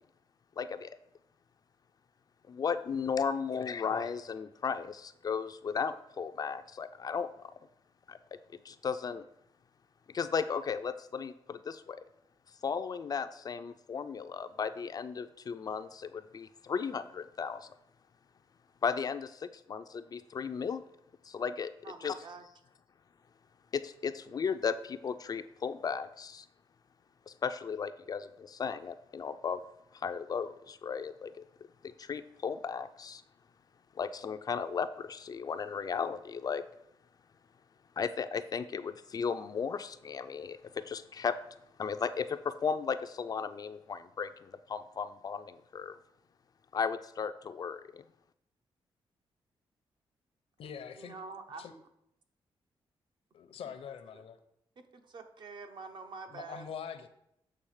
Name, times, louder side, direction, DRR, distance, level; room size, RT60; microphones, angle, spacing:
voice 1, 0.6-1.0 2.5-7.5 8.1-8.2 8.6-9.3 10.1-12.0 12.6-17.7 18.8-20.8 21.2-21.7 22.0-22.2 23.7-26.5 27.3-29.6 29.9-31.4 31.8-33.2 34.0-36.6 38.0-41.4 41.8-46.0 46.7-48.0, left 6 dB, 40° left, 11 dB, 0.4 m, -35 dB
voice 2, 21.8-22.5 50.9-51.7 53.7-53.8 54.1-54.2 54.8-56.7, right 4 dB, 55° right, 6 dB, 0.8 m, -46 dB
voice 3, 50.6-51.2 51.6-51.7 53.3-54.4 56.3-57.1, left 7 dB, 80° left, 9 dB, 0.7 m, -43 dB
7.7 x 3.3 x 6.4 m, 0.77 s
wide cardioid pair, 130°, 10 cm